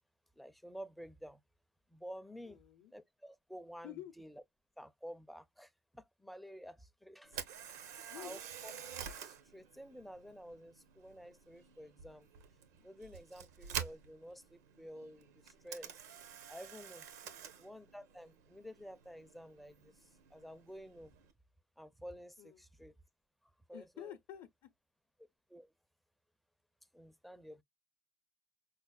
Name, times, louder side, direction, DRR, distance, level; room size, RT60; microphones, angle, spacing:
voice 1, 0.4-1.4 1.9-2.6 2.9-4.4 4.8-7.4 7.7-8.7 9.0-12.3 12.8-16.0 16.5-17.1 17.6-21.1 21.8-22.9 23.7-24.1 25.5-25.7 26.9-27.6, equal, ahead, 0.4 m, -51 dB
voice 2, 2.4-2.9 3.8-4.1 8.0-8.4 17.2-17.5 22.4-22.6 23.7-24.7, left 11 dB, 55° left, 0.6 m, -50 dB
Camera, 7.2-21.3, right 8 dB, 80° right, 0.9 m, -49 dB
5.6 x 2.0 x 2.3 m
hypercardioid pair, 100°, 9 cm